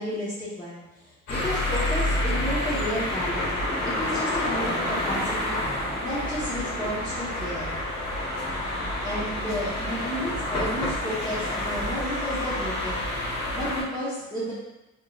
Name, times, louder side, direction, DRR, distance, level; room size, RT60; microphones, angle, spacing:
voice 1, 0.0-7.8 9.0-13.1 13.5-14.5, equal, 15° left, -10 dB, 1.0 m, -32 dB
sound 1, 1.3-13.8, left 1 dB, 75° left, 1.4 m, -28 dB
3.5 x 3.1 x 2.4 m, 0.99 s
cardioid pair, 90°, 30 cm